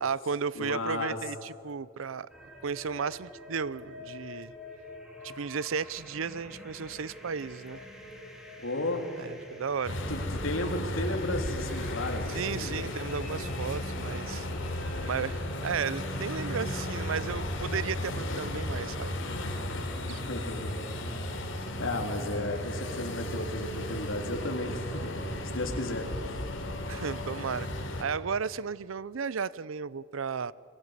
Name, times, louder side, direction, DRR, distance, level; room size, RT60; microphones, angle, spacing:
voice 1, 0.0-2.3 2.6-4.5 5.2-7.8 9.2-10.0 12.3-14.5 15.0-19.2 20.1-20.2 26.9-27.7 28.0-30.5, right 6 dB, 90° right, 0.6 m, -34 dB
voice 2, 0.6-1.2 8.6-9.1 10.1-12.9 20.1-20.8 21.8-25.1 25.5-26.1, left 1 dB, 90° left, 3.5 m, -33 dB
sound 1, 2.3-20.0, left 1 dB, 5° right, 4.0 m, -48 dB
sound 2, 9.8-28.0, left 1 dB, 70° left, 3.7 m, -35 dB
30.0 x 23.0 x 8.2 m
head